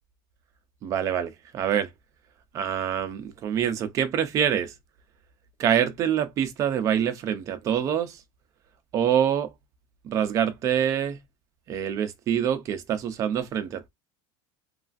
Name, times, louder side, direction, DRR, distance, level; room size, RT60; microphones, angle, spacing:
voice 1, 0.8-1.9 2.5-4.7 5.6-8.2 8.9-9.5 10.0-11.2 11.7-13.9, right 9 dB, 25° right, 0.4 m, -25 dB
3.1 x 2.3 x 2.4 m
cardioid pair, 180°, 13 cm